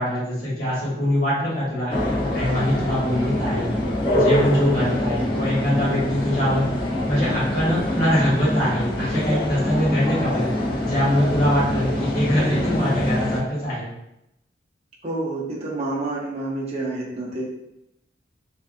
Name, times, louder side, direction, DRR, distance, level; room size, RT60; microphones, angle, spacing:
voice 1, 0.0-2.0 2.3-3.7 4.1-6.7 7.1-10.5 10.8-13.9, equal, 50° left, -8 dB, 1.3 m, -23 dB
sound 1, 1.9-13.4, left 1 dB, 25° left, 0.5 m, -25 dB
voice 2, 15.0-17.4, right 2 dB, 35° right, -5 dB, 0.6 m, -29 dB
2.5 x 2.4 x 2.5 m, 0.85 s
head